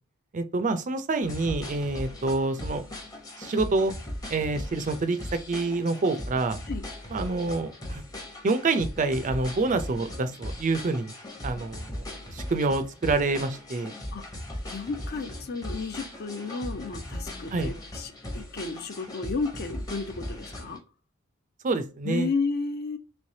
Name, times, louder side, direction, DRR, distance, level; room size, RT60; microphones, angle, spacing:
voice 1, 0.3-2.8 3.4-3.9 4.3-5.2 5.5-6.6 7.1-8.0 8.4-11.1 11.4-13.9 17.5-17.7 21.6-22.3, right 3 dB, 40° right, 0.4 m, -27 dB
sound 1, 1.2-20.8, left 1 dB, 20° left, 0.8 m, -38 dB
voice 2, 14.7-20.8 22.0-23.0, left 4 dB, 50° left, 0.5 m, -32 dB
3.2 x 3.2 x 2.7 m
head